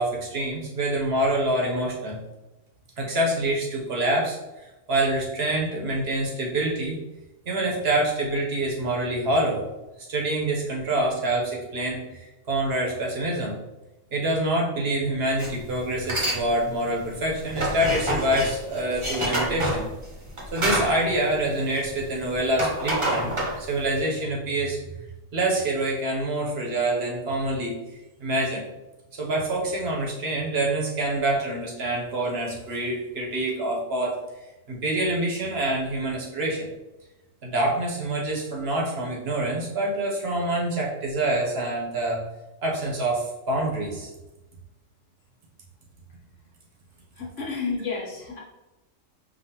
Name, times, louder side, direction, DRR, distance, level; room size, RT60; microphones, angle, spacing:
voice 1, 0.0-2.2 3.0-7.0 7.5-9.6 10.1-13.6 14.1-19.9 20.5-24.8 25.3-27.7 28.2-28.6 29.1-34.1 34.7-36.7 37.4-42.2 42.6-44.1, right 1 dB, 55° right, -1 dB, 1.0 m, -26 dB
sound 1, 15.4-15.6 16.0-16.4 16.8-22.1 22.4-23.9, right 1 dB, 30° right, 0.8 m, -27 dB
voice 2, 47.1-48.4, left 4 dB, 70° left, -4 dB, 1.4 m, -31 dB
5.3 x 2.4 x 2.8 m, 1.0 s
omnidirectional pair, 1.3 m